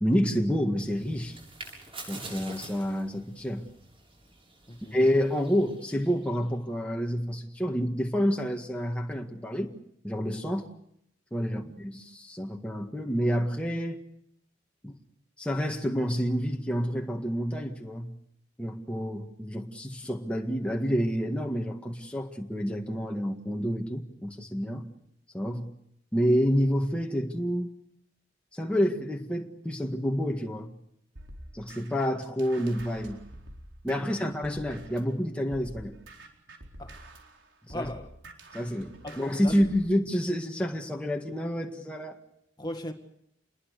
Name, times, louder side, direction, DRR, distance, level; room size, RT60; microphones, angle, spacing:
voice 1, 0.0-1.4 2.1-3.7 4.9-9.8 10.0-10.7 11.3-14.0 14.8-15.0 15.4-18.1 18.6-24.9 25.3-25.7 26.1-27.7 28.5-30.8 31.5-33.2 33.8-35.9 37.7-37.9 38.5-42.2, equal, 5° left, 1.8 m, -28 dB
sound 1, 0.7-6.5, right 2 dB, 30° right, 7.5 m, -47 dB
sound 2, 31.2-35.1 35.5-39.9, right 1 dB, 80° right, 4.4 m, -47 dB
voice 2, 33.9-34.3 36.8-37.1 37.7-38.1 39.0-39.6 42.6-42.9, left 1 dB, 25° left, 1.9 m, -39 dB
28.0 x 21.5 x 6.7 m
head